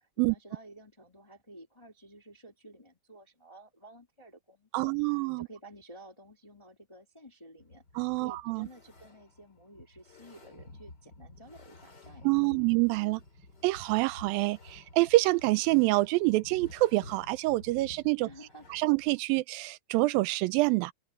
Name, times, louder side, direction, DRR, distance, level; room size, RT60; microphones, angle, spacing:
voice 1, 0.2-12.7 18.2-18.7, right 1 dB, 15° left, 1.3 m, -52 dB
voice 2, 4.7-5.5 8.0-8.7 12.2-13.2 13.6-18.3 18.7-20.9, right 21 dB, 85° right, 2.3 m, -26 dB
sound 1, 7.6-19.2, left 2 dB, 30° left, 3.8 m, -53 dB
open air
omnidirectional pair, 4.1 m